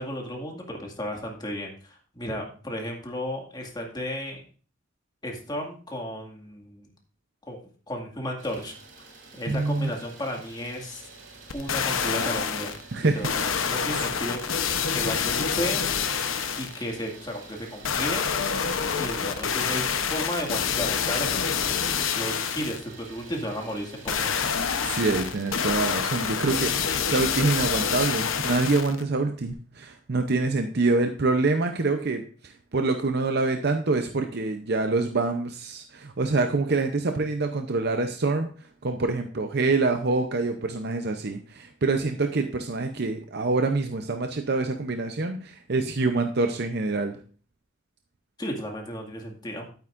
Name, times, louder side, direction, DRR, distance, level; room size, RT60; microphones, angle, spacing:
voice 1, 0.0-4.4 5.2-6.9 7.5-7.6 7.9-8.7 9.3-11.1 11.5-12.8 13.1-14.6 14.9-15.9 16.5-18.3 19.0-24.5 48.4-49.7, equal, 20° left, 1 dB, 2.1 m, -34 dB
Idling, 8.4-26.8, right 3 dB, 70° right, 2.4 m, -47 dB
voice 2, 9.5-9.9 12.9-13.3 24.8-38.5 38.8-47.2, right 3 dB, 55° right, 6 dB, 0.7 m, -26 dB
sound 1, 11.5-12.8 13.2-16.8 17.8-22.8 24.1-29.0 29.5-29.6, left 6 dB, 85° left, 0.9 m, -27 dB
12.0 x 8.9 x 2.6 m, 0.40 s
head